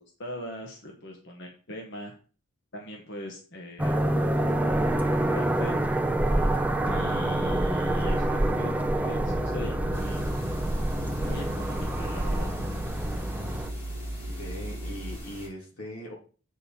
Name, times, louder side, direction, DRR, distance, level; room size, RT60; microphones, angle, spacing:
voice 1, 0.2-2.1 2.7-5.8 6.8-10.3 11.2-12.6, equal, 55° left, 1 dB, 1.3 m, -40 dB
sound 1, 3.8-13.7, right 1 dB, 5° right, 0.5 m, -27 dB
sound 2, 9.2-15.2, right 1 dB, 70° right, 1.1 m, -36 dB
sound 3, 9.9-15.5, right 1 dB, 25° left, 2.9 m, -44 dB
voice 2, 14.3-16.2, left 1 dB, 90° left, -1 dB, 3.0 m, -40 dB
8.4 x 5.3 x 4.4 m, 0.39 s
head